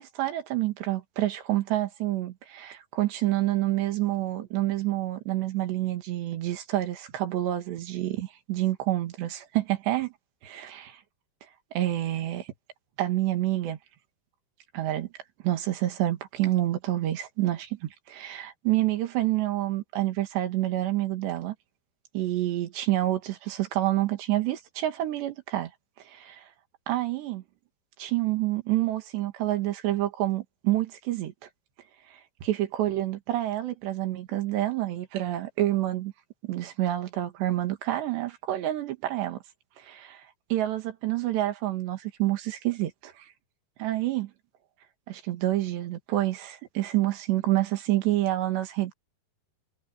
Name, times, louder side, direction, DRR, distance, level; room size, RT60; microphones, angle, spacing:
voice 1, 0.0-10.1 10.5-10.8 11.7-12.5 13.0-13.8 14.7-15.1 15.4-21.6 22.1-25.7 26.1-26.5 26.9-27.4 28.0-31.3 32.4-36.1 36.4-39.4 39.8-43.3 43.8-44.3 45.1-48.9, right 15 dB, 85° right, 4.1 m, -28 dB
omnidirectional pair, 4.9 m